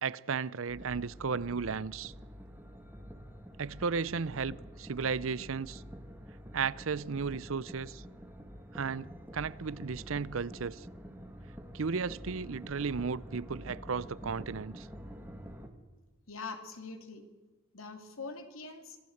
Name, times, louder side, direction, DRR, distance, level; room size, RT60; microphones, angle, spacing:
voice 1, 0.0-2.1 3.6-5.8 6.5-8.0 8.7-9.1 9.3-10.9 11.7-14.9, right 5 dB, 75° right, 0.6 m, -34 dB
sound 1, 0.7-15.7, equal, 10° right, 2.1 m, -47 dB
voice 2, 16.3-17.2 17.7-19.0, left 4 dB, 80° left, 2.8 m, -43 dB
25.5 x 15.5 x 7.9 m
head